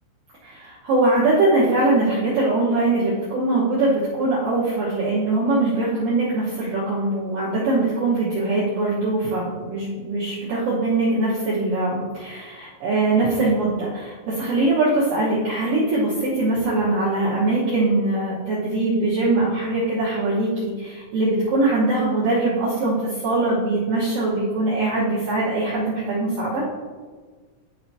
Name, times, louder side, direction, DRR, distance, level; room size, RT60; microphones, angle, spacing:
voice 1, 0.4-26.6, right 2 dB, 90° right, -8 dB, 1.9 m, -22 dB
11.5 x 4.6 x 2.8 m, 1.5 s
omnidirectional pair, 5.9 m